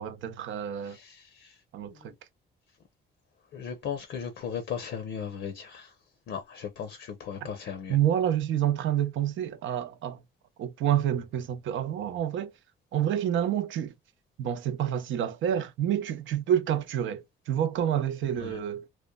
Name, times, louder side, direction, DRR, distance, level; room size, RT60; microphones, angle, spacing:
voice 1, 0.0-1.0 1.7-2.1 7.9-10.2 10.6-12.5 12.9-13.9 14.4-18.9, right 10 dB, 75° right, 0.6 m, -28 dB
voice 2, 0.8-1.6 1.9-2.1 3.5-5.9 6.3-8.0 18.4-18.6, left 7 dB, 70° left, 0.7 m, -37 dB
3.0 x 2.1 x 2.2 m
cardioid pair, 90°, 20 cm